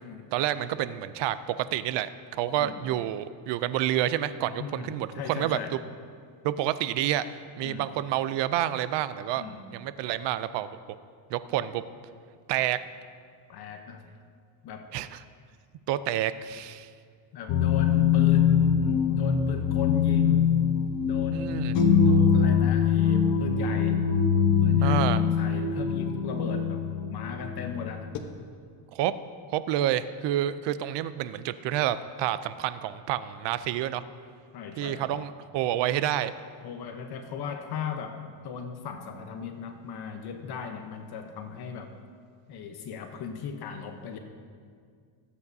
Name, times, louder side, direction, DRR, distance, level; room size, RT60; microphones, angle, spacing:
voice 1, 0.3-5.6 6.4-7.3 7.6-9.4 9.7-10.7 11.3-11.8 12.5-12.8 14.9-15.2 15.9-16.9 21.3-21.7 24.8-25.2 28.9-29.1 29.5-34.0 34.8-36.3, right 12 dB, 65° right, 14 dB, 0.5 m, -28 dB
voice 2, 4.6-5.8 7.6-7.9 9.3-9.6 13.5-14.0 14.6-14.9 17.3-20.4 21.0-24.0 24.6-26.8 27.1-28.1 34.5-35.1 36.6-41.9 42.5-44.2, left 6 dB, 55° left, 6 dB, 0.9 m, -37 dB
sound 1, 17.5-28.2, left 7 dB, 75° left, 1.1 m, -23 dB
18.0 x 8.3 x 2.7 m, 2.1 s
cardioid pair, 130°, 46 cm